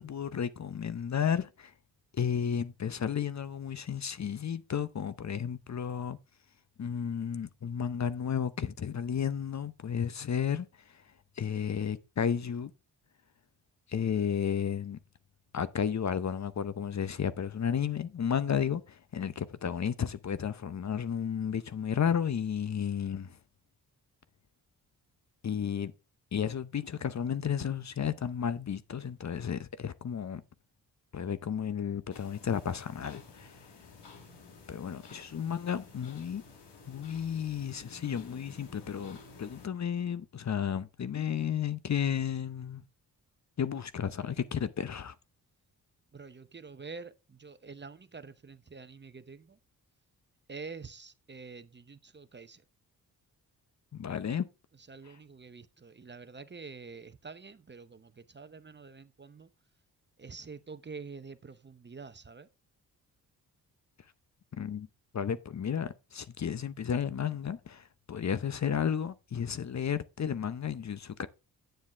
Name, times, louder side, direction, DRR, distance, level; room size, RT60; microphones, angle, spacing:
voice 1, 0.0-1.7 2.1-6.2 6.8-12.7 13.9-15.0 15.5-23.4 25.4-25.9 26.3-30.4 31.1-33.6 34.7-36.4 36.9-42.8 43.6-45.1 53.9-54.5 64.5-64.9 65.1-71.3, left 8 dB, 40° left, 0.8 m, -33 dB
sound 1, 32.1-39.7, left 4 dB, 75° left, 2.4 m, -52 dB
voice 2, 46.1-49.6 50.5-52.6 54.9-59.5 60.2-62.5, right 4 dB, 25° right, 0.8 m, -47 dB
9.1 x 7.3 x 3.4 m
supercardioid pair, 45°, 41 cm